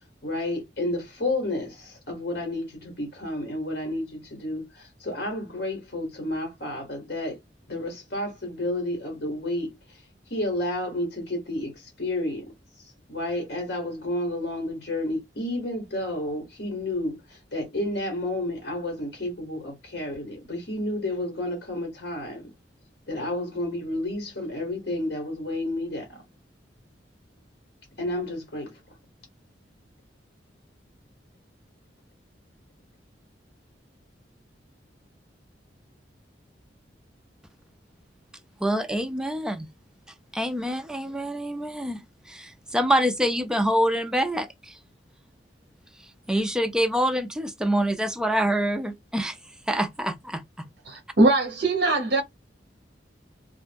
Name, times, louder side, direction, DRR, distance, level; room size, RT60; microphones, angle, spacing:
voice 1, 0.2-7.4 7.7-9.7 10.3-12.4 12.8-22.5 23.1-26.2 28.0-28.7, left 1 dB, 60° left, 1.1 m, -31 dB
voice 2, 38.6-39.7 40.3-42.0 42.3-44.8 46.3-49.4 49.7-50.7, equal, 5° right, 0.3 m, -26 dB
voice 3, 50.8-52.2, right 2 dB, 65° right, 0.8 m, -21 dB
2.2 x 2.1 x 3.3 m
head